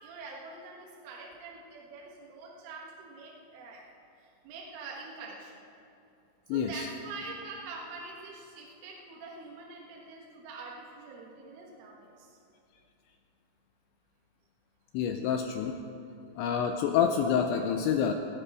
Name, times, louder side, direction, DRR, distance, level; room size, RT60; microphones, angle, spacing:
voice 1, 0.0-3.8 4.2-5.6 6.5-12.4, right 3 dB, 75° right, -3 dB, 3.9 m, -45 dB
voice 2, 6.5-6.9 14.9-15.8 16.4-18.1, left 7 dB, 80° left, 6 dB, 2.6 m, -27 dB
18.5 x 16.0 x 4.9 m, 2.6 s
omnidirectional pair, 5.9 m